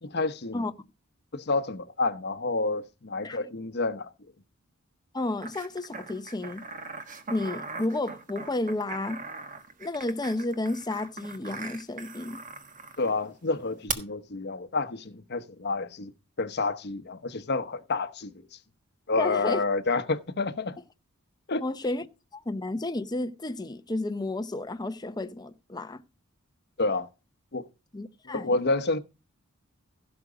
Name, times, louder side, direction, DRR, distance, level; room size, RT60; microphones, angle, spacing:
voice 1, 0.0-0.6 1.3-4.1 13.0-16.1 16.4-18.6 19.1-20.8 21.5-21.6 26.8-27.1 27.5-27.6 28.3-29.0, left 3 dB, 50° left, 1.0 m, -29 dB
voice 2, 5.1-6.6 7.3-9.2 9.8-12.4 19.2-19.6 21.6-22.0 22.3-26.0 27.9-28.7, left 2 dB, 20° left, 0.7 m, -32 dB
sound 1, 5.4-13.1 13.9-14.0, right 5 dB, 40° right, 1.4 m, -40 dB
16.0 x 6.1 x 5.0 m
head